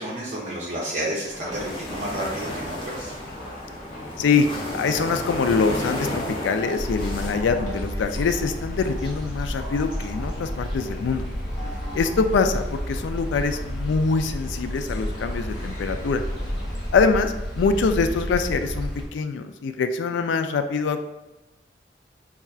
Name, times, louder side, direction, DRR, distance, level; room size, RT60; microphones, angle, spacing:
voice 1, 0.0-3.1 11.6-11.9, right 1 dB, 40° right, -3 dB, 0.5 m, -31 dB
sound 1, 1.2-16.9, left 1 dB, 50° left, 1.0 m, -41 dB
sound 2, 1.5-7.3, left 1 dB, 30° left, 0.6 m, -33 dB
voice 2, 4.7-11.3 11.9-16.2 16.9-21.1, left 4 dB, 80° left, 8 dB, 0.3 m, -24 dB
sound 3, 6.8-19.1, equal, 5° right, 0.9 m, -31 dB
5.4 x 2.3 x 2.3 m, 1.0 s
head